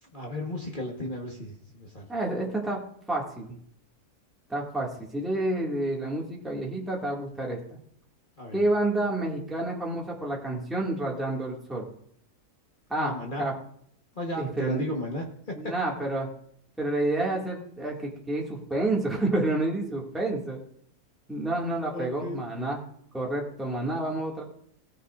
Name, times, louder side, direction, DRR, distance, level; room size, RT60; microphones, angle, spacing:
voice 1, 0.0-2.1 8.4-8.6 13.0-13.5 14.1-15.7 21.9-22.4, left 1 dB, 35° left, -1 dB, 1.4 m, -34 dB
voice 2, 2.1-2.8 3.1-3.6 4.5-7.8 8.5-11.9 12.9-13.1 13.4-13.5 14.4-14.8 15.5-16.3 16.8-20.6 21.3-22.8 23.1-24.4, right 2 dB, ahead, -3 dB, 2.0 m, -29 dB
17.5 x 9.9 x 2.5 m, 0.64 s
omnidirectional pair, 1.6 m